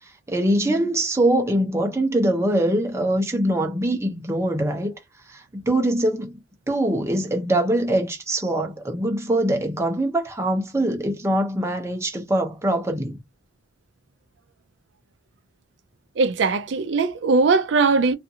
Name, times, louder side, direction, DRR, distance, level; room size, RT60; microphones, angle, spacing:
voice 1, 0.3-4.9 5.3-6.3 6.7-13.2, right 1 dB, 15° right, 0.7 m, -23 dB
voice 2, 16.2-18.2, right 4 dB, 65° right, 0.4 m, -20 dB
2.5 x 2.4 x 2.7 m
head